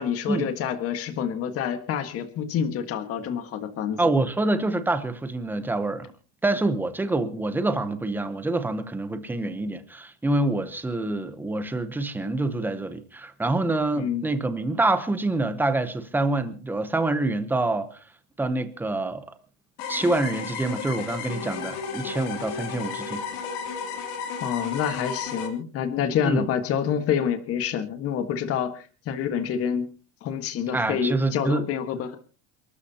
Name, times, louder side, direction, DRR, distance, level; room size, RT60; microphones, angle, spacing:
voice 1, 0.0-4.0 13.9-14.3 24.4-29.9 30.2-32.2, left 8 dB, 30° left, 1.6 m, -27 dB
voice 2, 4.0-6.1 6.4-17.9 18.4-19.2 19.9-23.3 26.2-26.5 30.7-31.7, right 2 dB, 5° right, 0.8 m, -26 dB
sound 1, 19.8-25.5, left 6 dB, 55° left, 3.2 m, -33 dB
28.5 x 13.0 x 2.9 m
cardioid pair, 175°, 44 cm